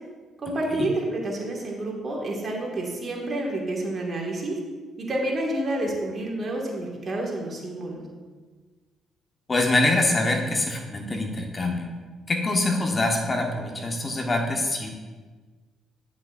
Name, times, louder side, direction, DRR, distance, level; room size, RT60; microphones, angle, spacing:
voice 1, 0.4-4.6 5.0-8.1, right 1 dB, 40° right, -1 dB, 1.9 m, -29 dB
voice 2, 9.5-11.9 12.3-14.9, left 2 dB, 30° left, 2 dB, 1.1 m, -24 dB
9.8 x 6.1 x 2.5 m, 1.4 s
supercardioid pair, 70°, 0 cm